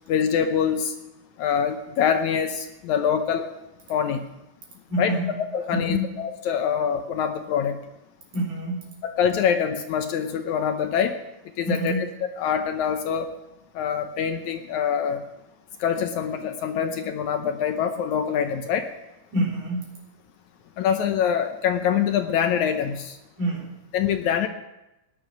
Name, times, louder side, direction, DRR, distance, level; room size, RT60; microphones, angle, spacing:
voice 1, 0.1-0.9 1.4-3.5 3.9-4.2 5.0-5.1 5.5-7.8 9.2-11.2 11.6-11.9 12.4-13.3 13.8-15.2 15.8-18.9 20.8-23.2 23.9-24.5, left 8 dB, 75° left, 7 dB, 2.0 m, -24 dB
voice 2, 4.9-6.1 8.3-8.9 11.6-12.1 19.3-19.9 23.4-23.7, equal, 70° right, -3 dB, 5.3 m, -27 dB
17.5 x 10.5 x 6.1 m, 0.95 s
omnidirectional pair, 3.8 m